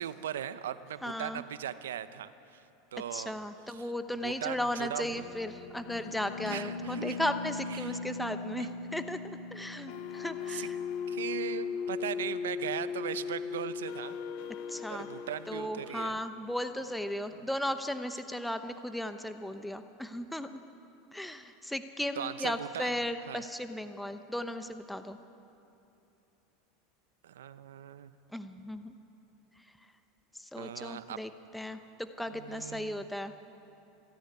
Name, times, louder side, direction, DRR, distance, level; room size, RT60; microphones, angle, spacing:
voice 1, 0.0-2.6 2.9-3.4 3.7-3.9 4.2-5.2 6.5-7.2 7.7-8.0 8.6-8.7 10.5-10.7 11.1-14.2 14.9-16.2 22.2-23.0 23.3-23.4 27.2-28.1 30.6-31.2 32.3-33.1, right 10 dB, 90° right, 13 dB, 0.8 m, -39 dB
voice 2, 1.0-1.4 3.1-10.8 14.7-15.1 15.5-20.5 21.1-25.2 28.3-28.9 30.3-33.3, left 1 dB, 5° left, 8 dB, 0.9 m, -36 dB
sound 1, 5.1-16.1, left 5 dB, 65° left, 1.0 m, -38 dB
27.0 x 10.5 x 9.7 m, 2.9 s
supercardioid pair, 110°, 0 cm